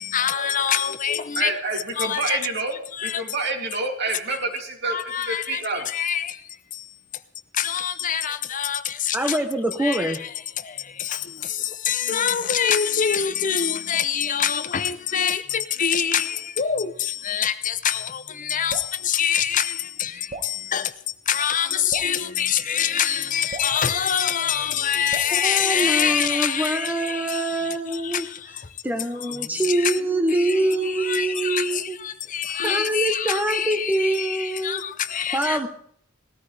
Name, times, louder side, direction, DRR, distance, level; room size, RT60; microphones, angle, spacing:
voice 1, 0.0-1.5 2.0-2.4 2.9-3.2 4.8-7.2 7.5-9.4 9.8-28.8 29.1-30.0 30.3-35.6, left 8 dB, 40° left, 0.7 m, -25 dB
voice 2, 1.4-2.7 3.0-5.0 5.3-5.9 29.3-30.2 30.5-30.9 32.6-32.8, right 3 dB, 55° right, 2.9 m, -29 dB
voice 3, 9.1-10.2 25.4-28.3 28.8-32.0 32.6-34.8 35.3-35.7, right 2 dB, 10° right, 0.9 m, -24 dB
Drip, 18.7-19.0 20.3-20.6 21.9-22.2 23.5-23.8 25.1-25.4, right 3 dB, 35° right, 1.2 m, -36 dB
19.5 x 13.5 x 3.4 m
head